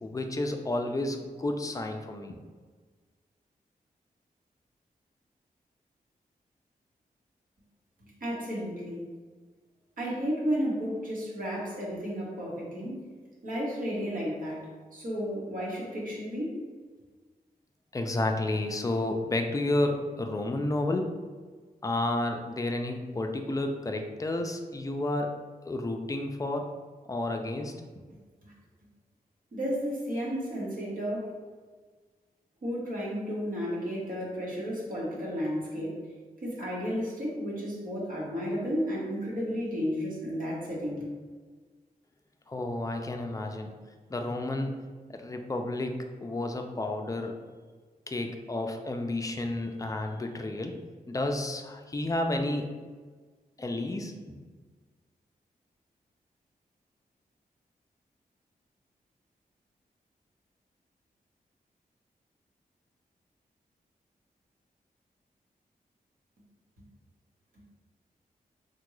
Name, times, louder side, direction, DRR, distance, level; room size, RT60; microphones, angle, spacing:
voice 1, 0.0-2.4 17.9-21.1 21.8-25.4 25.7-26.7 27.1-27.7 42.5-43.7 44.1-44.8 45.2-47.3 48.1-50.8 51.1-52.7 53.6-54.4, left 2 dB, 20° left, 4 dB, 0.4 m, -31 dB
voice 2, 8.2-9.1 10.0-13.1 13.4-16.6 28.4-28.5 29.5-31.4 32.6-36.0 36.4-41.0, equal, 65° right, -5 dB, 1.0 m, -33 dB
3.5 x 2.2 x 3.0 m, 1.5 s
cardioid pair, 75°, 15 cm